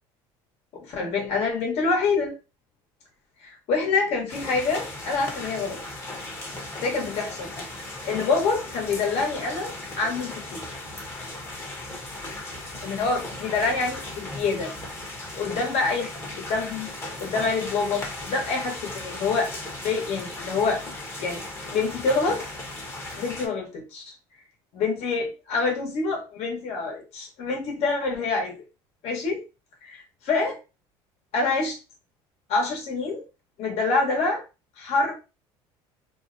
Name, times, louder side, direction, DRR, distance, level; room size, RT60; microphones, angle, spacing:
voice 1, 0.7-2.3 3.4-5.8 6.8-7.7 8.0-10.8 12.8-14.7 15.4-16.1 16.4-16.9 17.2-19.5 19.8-20.8 21.2-21.4 21.7-22.4 23.2-24.1 24.7-28.5 29.0-29.4 29.8-30.6 31.3-31.8 32.5-33.2 33.6-34.4 34.8-35.1, left 4 dB, 60° left, 0 dB, 1.1 m, -26 dB
sound 1, 4.3-23.5, left 2 dB, 20° left, 0.8 m, -37 dB
2.7 x 2.0 x 2.5 m, 0.29 s
supercardioid pair, 95°, 12 cm